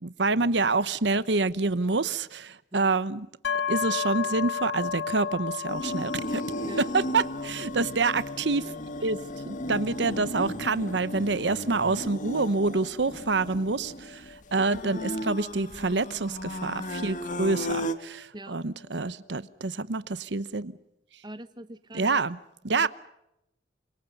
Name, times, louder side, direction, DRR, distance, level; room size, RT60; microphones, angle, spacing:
voice 1, 0.0-3.3 3.7-6.4 6.8-8.8 9.0-9.2 9.5-14.2 14.5-20.7 21.9-22.4 22.6-22.9, right 3 dB, 85° right, 1.0 m, -27 dB
sound 1, 3.4-17.1, left 7 dB, 80° left, 1.5 m, -36 dB
sound 2, 5.7-18.0, equal, 45° left, 1.7 m, -35 dB
voice 2, 21.2-22.2 22.7-22.9, right 1 dB, 25° right, 1.1 m, -43 dB
29.0 x 26.0 x 5.4 m
head